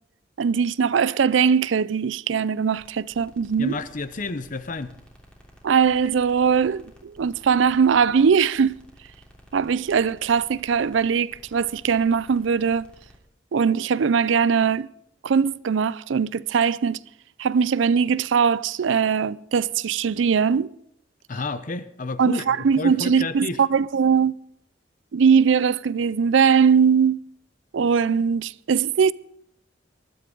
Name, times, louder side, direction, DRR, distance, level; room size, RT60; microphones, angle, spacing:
voice 1, 0.4-3.8 5.6-8.7 9.5-12.9 13.5-14.9 15.2-17.0 17.4-20.7 22.2-24.3 25.1-27.2 27.7-29.1, right 6 dB, 80° right, 0.4 m, -20 dB
sound 1, 2.8-13.2, equal, 5° left, 3.1 m, -52 dB
voice 2, 3.6-4.9 21.3-23.6, left 3 dB, 45° left, 0.7 m, -30 dB
20.5 x 13.5 x 3.9 m
head